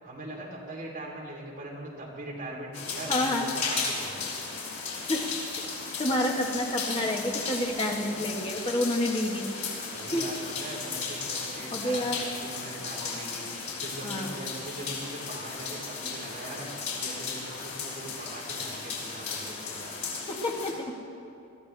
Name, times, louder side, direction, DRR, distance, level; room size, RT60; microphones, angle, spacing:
voice 1, 0.0-4.2 9.9-13.4 13.8-20.0, right 1 dB, 40° right, -4 dB, 3.2 m, -41 dB
sound 1, 2.7-20.7, left 4 dB, 80° left, 4.4 m, -35 dB
voice 2, 3.1-3.5 5.1-5.2 6.0-9.5 10.1-10.2 11.7-12.2 14.0-14.3 20.3-20.9, left 1 dB, 25° left, 1 dB, 1.3 m, -29 dB
21.5 x 14.5 x 3.3 m, 2.7 s
head